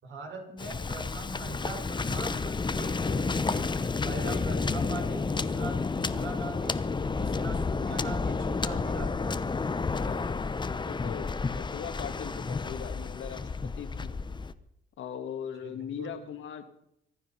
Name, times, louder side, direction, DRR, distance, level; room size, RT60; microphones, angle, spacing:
voice 1, 0.0-3.7 4.0-6.8 7.1-9.4 15.6-16.1, right 3 dB, 70° right, 2 dB, 5.1 m, -41 dB
Waves surf, 0.6-14.5, left 4 dB, 25° left, 0.8 m, -31 dB
voice 2, 9.9-14.2 15.0-16.7, left 8 dB, 75° left, 7 dB, 2.0 m, -40 dB
25.0 x 10.0 x 5.7 m, 0.78 s
cardioid pair, 90°, 20 cm